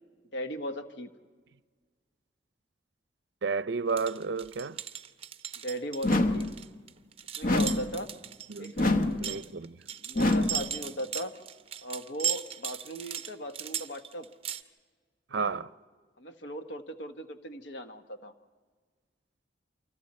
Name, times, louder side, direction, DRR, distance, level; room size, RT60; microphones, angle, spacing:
voice 1, 0.3-1.1 5.6-6.5 7.4-8.1 8.6-9.4 10.0-11.3 11.8-14.3 15.3-15.6 16.2-18.3, equal, 70° left, 1.2 m, -38 dB
voice 2, 3.4-4.8 8.5-8.7 9.0-9.8 15.3-15.7, right 5 dB, 65° right, 0.5 m, -32 dB
sound 1, 3.9-14.6, right 9 dB, 30° right, 0.7 m, -37 dB
sound 2, 6.0-6.6 7.4-8.0 8.8-9.3 10.1-10.7, left 2 dB, 50° left, 1.0 m, -26 dB
29.0 x 24.5 x 4.3 m
head